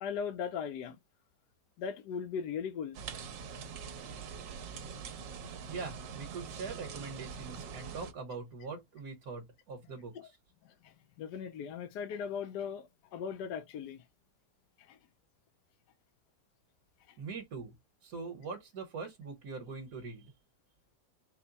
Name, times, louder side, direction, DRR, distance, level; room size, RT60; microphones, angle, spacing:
voice 1, 0.0-1.0 1.8-3.0 10.1-10.3 10.6-14.0 14.8-15.0 17.1-17.2, left 7 dB, 75° left, 1.2 m, -39 dB
sound 1, 2.9-8.1, right 6 dB, 90° right, 1.5 m, -44 dB
voice 2, 5.7-10.3 17.2-17.7 18.0-20.3, right 4 dB, 60° right, 1.6 m, -42 dB
4.3 x 2.1 x 3.9 m
omnidirectional pair, 1.9 m